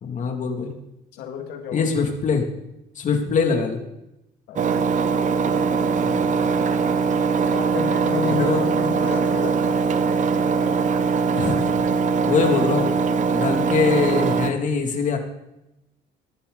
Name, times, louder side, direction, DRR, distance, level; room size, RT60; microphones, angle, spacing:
voice 1, 0.0-0.7 1.7-2.5 3.0-3.8 6.0-6.6 8.4-8.7 11.3-11.7 12.2-13.0 13.3-15.2, left 5 dB, 45° left, 3 dB, 2.4 m, -23 dB
voice 2, 1.1-1.9 4.5-4.8 7.5-9.9, left 7 dB, 80° left, 4 dB, 2.1 m, -31 dB
Engine, 4.6-14.5, right 5 dB, 45° right, 0.9 m, -21 dB
16.0 x 11.5 x 3.9 m, 0.90 s
cardioid pair, 110°, 17 cm